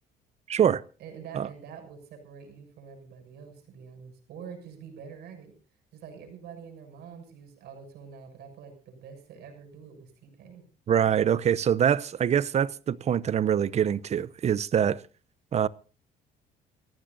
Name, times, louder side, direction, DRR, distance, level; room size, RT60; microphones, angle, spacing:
voice 1, 0.5-0.8 1.3-1.5 10.9-15.0 15.5-15.7, right 9 dB, 40° right, 0.8 m, -24 dB
voice 2, 1.0-5.5 5.9-10.6, right 6 dB, 75° right, 7.0 m, -46 dB
27.5 x 15.0 x 2.7 m
cardioid pair, 110°, 17 cm